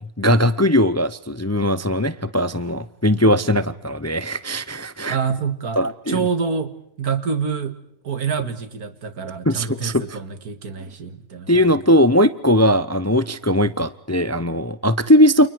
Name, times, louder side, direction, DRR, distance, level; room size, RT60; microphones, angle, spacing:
voice 1, 0.2-5.2 5.8-6.2 9.4-10.2 11.5-15.5, equal, 15° left, 15 dB, 0.6 m, -19 dB
voice 2, 5.1-5.8 6.1-7.8 8.0-11.7, right 5 dB, 80° right, 12 dB, 2.3 m, -26 dB
29.5 x 29.0 x 4.7 m, 0.71 s
omnidirectional pair, 1.6 m